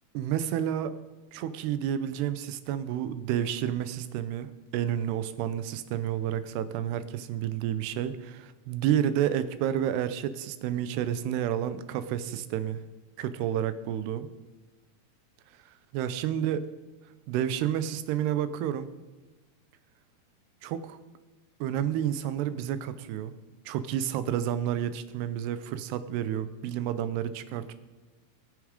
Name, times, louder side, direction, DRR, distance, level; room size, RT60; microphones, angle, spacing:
voice 1, 0.1-1.0 1.3-12.8 13.2-14.3 15.9-16.6 17.3-18.9 20.6-21.0 21.6-23.3 23.7-27.7, right 10 dB, 90° right, 13 dB, 2.8 m, -30 dB
21.0 x 7.2 x 5.1 m, 1.2 s
omnidirectional pair, 4.6 m